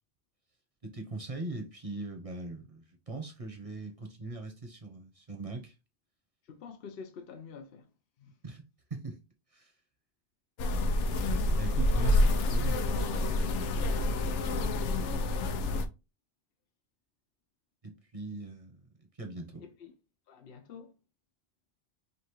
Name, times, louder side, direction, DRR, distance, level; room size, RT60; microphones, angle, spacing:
voice 1, 0.8-5.7 8.4-9.2 9.5-9.7 11.6-13.6 18.1-19.6, right 3 dB, 35° right, 0.8 m, -41 dB
voice 2, 6.4-7.9 8.2-8.3 19.6-19.9 20.3-20.9, left 6 dB, 60° left, 0.9 m, -47 dB
sound 1, 10.6-15.9, left 1 dB, 90° left, 0.9 m, -28 dB
5.2 x 2.4 x 3.0 m
omnidirectional pair, 1.2 m